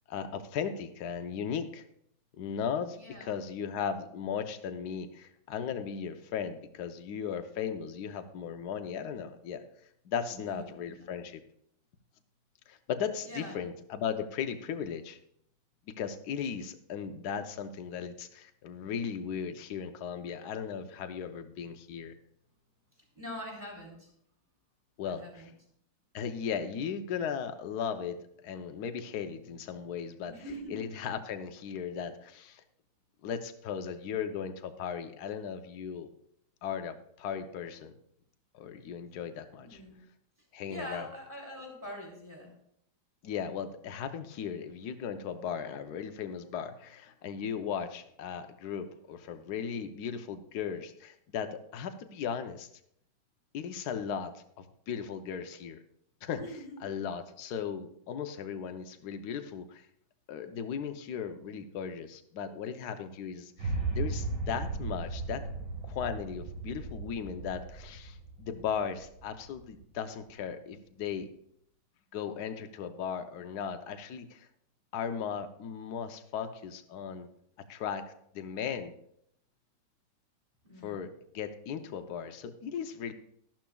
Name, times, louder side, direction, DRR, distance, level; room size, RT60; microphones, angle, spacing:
voice 1, 0.1-1.8 2.4-9.6 10.0-11.4 12.7-15.2 16.0-22.1 25.0-25.5 26.1-30.3 30.7-32.6 33.2-36.1 36.6-37.9 38.5-39.8 40.5-41.1 43.2-52.7 53.5-55.8 56.2-56.4 56.8-59.9 60.3-65.4 65.8-71.3 72.1-74.5 74.9-77.3 77.7-78.0 78.3-78.9 80.8-83.1, left 7 dB, 65° left, 8 dB, 1.3 m, -37 dB
voice 2, 2.9-3.3 10.3-11.1 13.2-13.7 23.0-24.1 25.0-25.5 30.3-30.9 39.5-40.0 40.7-42.6 56.4-56.8 80.6-81.0, equal, 10° right, -1 dB, 2.8 m, -44 dB
sound 1, 63.6-69.8, right 3 dB, 60° right, 3.5 m, -36 dB
13.0 x 12.0 x 2.3 m, 0.71 s
omnidirectional pair, 2.0 m